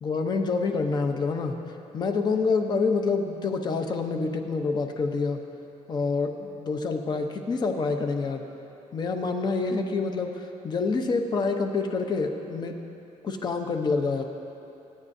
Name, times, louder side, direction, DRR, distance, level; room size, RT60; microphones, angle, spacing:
voice 1, 0.0-1.6 1.9-5.4 5.9-8.4 8.9-12.7 13.2-14.2, left 4 dB, 35° left, 5 dB, 0.8 m, -27 dB
22.0 x 9.9 x 2.7 m, 3.0 s
cardioid pair, 175°, 13 cm